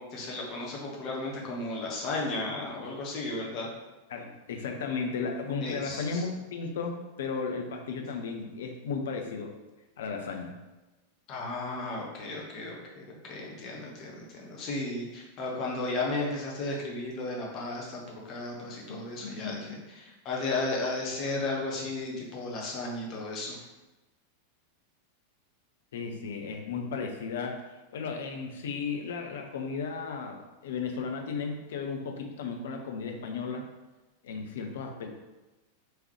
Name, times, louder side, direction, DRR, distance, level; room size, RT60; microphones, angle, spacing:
voice 1, 0.0-3.7 5.6-6.2 11.3-18.0 18.3-23.6, left 2 dB, 35° left, -2 dB, 0.9 m, -34 dB
voice 2, 4.1-9.5 10.0-10.6 18.9-19.6 25.9-27.6 27.9-33.7 34.2-35.1, left 5 dB, 60° left, 3 dB, 0.5 m, -35 dB
3.6 x 3.1 x 3.1 m, 1.1 s
figure-of-eight pair, 90°, 0 cm